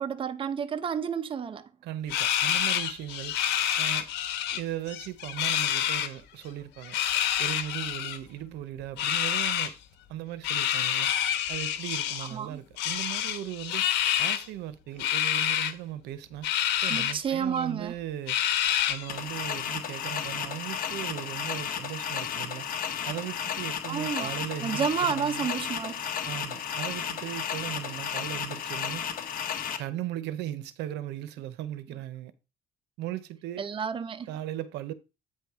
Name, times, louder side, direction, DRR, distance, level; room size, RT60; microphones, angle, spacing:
voice 1, 0.0-1.7 12.3-12.6 16.9-17.9 23.9-24.3 24.6-26.0 33.6-34.3, right 7 dB, 30° right, 0.7 m, -30 dB
voice 2, 1.8-3.4 3.8-4.1 4.5-7.0 7.4-9.7 10.1-11.1 11.5-13.9 14.2-16.5 16.8-18.4 18.9-22.7 23.0-25.5 26.2-29.1 29.8-32.3 33.0-33.6 34.3-34.9, right 12 dB, 85° right, 0.8 m, -37 dB
sound 1, 2.1-4.6 4.9-6.1 6.8-8.2 9.0-9.7 10.4-12.3 12.8-14.5 15.0-15.7 16.4-17.1 17.6-17.7 18.3-19.2, left 11 dB, 85° left, 1.1 m, -27 dB
sound 2, 19.1-29.8, left 8 dB, 55° left, 1.2 m, -33 dB
8.8 x 4.6 x 4.7 m
cardioid pair, 110°, 17 cm